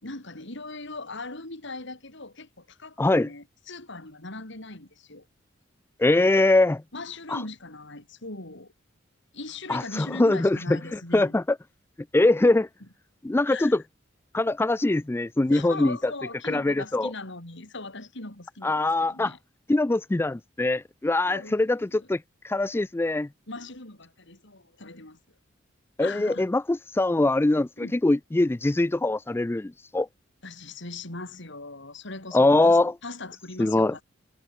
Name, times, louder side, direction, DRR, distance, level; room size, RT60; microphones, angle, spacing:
voice 1, 0.0-5.2 6.9-8.7 9.3-11.4 12.4-12.5 13.5-13.7 15.5-19.4 21.2-22.1 23.5-25.2 26.0-26.5 27.8-28.0 30.4-34.0, left 3 dB, 65° left, 5.0 m, -40 dB
voice 2, 3.0-3.3 6.0-6.8 7.3-7.4 9.7-11.4 12.1-12.7 13.2-13.8 14.3-16.1 16.4-17.1 18.6-19.3 19.7-23.3 26.0-30.1 32.3-32.9 33.6-33.9, left 2 dB, 10° left, 0.3 m, -23 dB
head